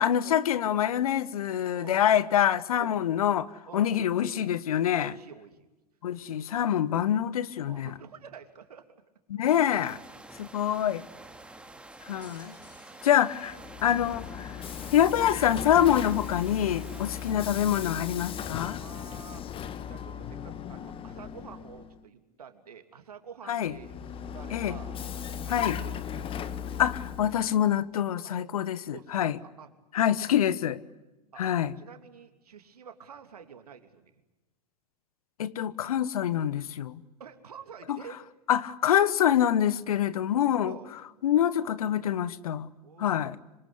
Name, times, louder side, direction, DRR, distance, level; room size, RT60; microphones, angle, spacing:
voice 1, 0.0-3.5 3.7-5.1 6.0-7.9 9.3-10.0 10.4-11.0 12.0-12.5 13.0-14.6 14.9-18.8 23.5-23.7 24.5-24.8 25.5-25.8 26.8-29.4 29.9-30.8 31.4-31.7 35.4-37.0 37.9-38.0 38.5-40.7 41.2-42.7 43.0-43.4, left 10 dB, 65° left, 1.2 m, -26 dB
voice 2, 1.7-2.0 2.7-3.0 3.7-3.9 4.9-5.7 7.7-8.9 10.9-11.5 16.9-17.2 18.8-19.4 19.9-25.0 25.4-26.5 28.2-28.3 28.7-30.1 31.3-31.4 31.8-34.2 37.2-38.2 40.6-40.9 42.8-43.3, right 7 dB, 70° right, 3.0 m, -48 dB
sound 1, 9.4-17.3, right 2 dB, 5° right, 2.8 m, -48 dB
sound 2, 11.9-14.4, left 2 dB, 90° left, 7.0 m, -59 dB
Vehicle, 13.5-22.0 23.6-27.5, left 8 dB, 25° left, 1.5 m, -37 dB
26.5 x 25.5 x 8.3 m
figure-of-eight pair, 90°, 20 cm